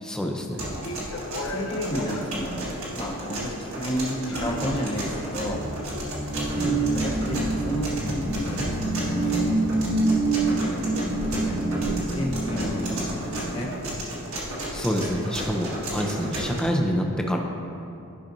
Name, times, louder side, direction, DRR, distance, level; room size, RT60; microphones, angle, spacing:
voice 1, 0.1-0.7 6.6-6.8 14.7-17.4, equal, 5° left, 1 dB, 0.5 m, -27 dB
sound 1, 0.6-16.6, right 1 dB, 65° right, 1.6 m, -33 dB
sound 2, 0.7-13.4, left 1 dB, 75° left, 0.7 m, -38 dB
voice 2, 1.1-2.7 2.9-5.6 6.6-8.6 9.0-9.6 10.5-13.7, equal, 25° left, -2 dB, 0.9 m, -32 dB
sound 3, 5.3-14.3, right 2 dB, 45° right, 1.2 m, -27 dB
11.5 x 5.7 x 2.6 m, 2.7 s
head